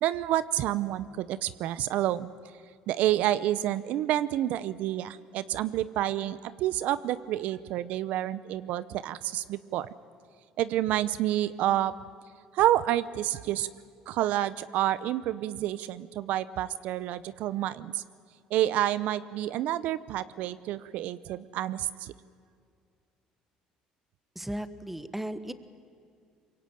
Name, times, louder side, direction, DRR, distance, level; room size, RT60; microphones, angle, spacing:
voice 1, 0.0-2.3 2.9-9.9 10.6-11.9 12.5-13.7 14.1-18.0 18.5-22.1, right 13 dB, 70° right, 16 dB, 0.7 m, -29 dB
voice 2, 24.3-25.5, right 1 dB, 5° right, 13 dB, 1.4 m, -36 dB
24.0 x 22.0 x 9.1 m, 2.3 s
supercardioid pair, 90°, 3 cm